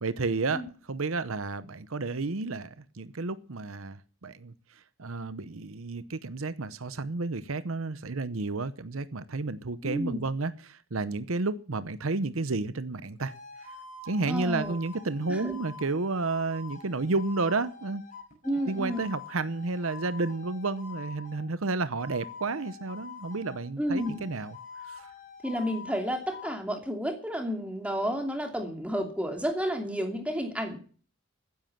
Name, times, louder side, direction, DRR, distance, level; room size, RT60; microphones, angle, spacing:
voice 1, 0.0-13.3 13.6-13.7 14.0-18.0 18.7-24.6 24.8-25.1, right 3 dB, 75° right, 0.8 m, -31 dB
voice 2, 9.8-10.2 14.3-14.8 15.3-15.5 18.4-19.1 23.8-24.2 25.4-30.8, equal, 5° right, 2.6 m, -31 dB
sound 1, 13.2-21.5 22.0-23.7 24.0-26.6, left 4 dB, 35° left, 6.5 m, -46 dB
15.5 x 10.5 x 7.3 m
head